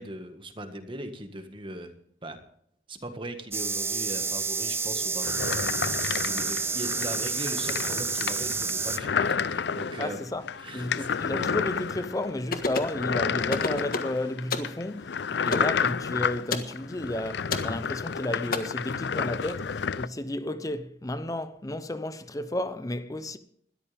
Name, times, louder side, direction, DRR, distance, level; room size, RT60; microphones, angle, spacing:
voice 1, 0.0-1.9 2.2-2.4 2.9-10.3 10.6-11.5, right 1 dB, 30° right, 1.7 m, -39 dB
sound 1, 3.5-9.0, right 5 dB, 15° right, 0.5 m, -29 dB
sound 2, 5.2-20.1, left 6 dB, 75° left, 0.5 m, -31 dB
voice 2, 10.0-10.5 10.7-23.4, left 1 dB, 20° left, 0.7 m, -32 dB
sound 3, 12.5-13.0 13.5-14.1 14.5-14.7 15.5-15.7 16.5-16.7 17.5-17.7 18.5-18.6, left 3 dB, 55° left, 1.5 m, -29 dB
20.5 x 13.5 x 3.5 m
head